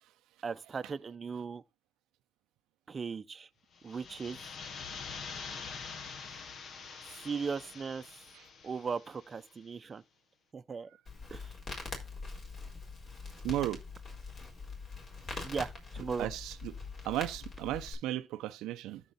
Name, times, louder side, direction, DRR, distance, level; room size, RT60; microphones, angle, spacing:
voice 1, 0.4-1.6 2.9-3.5 3.8-4.4 7.1-8.2 8.6-10.0 10.5-10.9 11.3-11.5 15.4-16.3, right 5 dB, 35° right, 0.7 m, -38 dB
sound 1, 3.7-9.4, left 5 dB, 60° left, 1.1 m, -45 dB
Crackle, 11.1-17.9, left 3 dB, 45° left, 4.5 m, -43 dB
voice 2, 13.4-13.8 16.2-16.7 17.0-19.0, right 14 dB, 85° right, 0.6 m, -35 dB
13.5 x 4.5 x 4.1 m
cardioid pair, 100°, 0 cm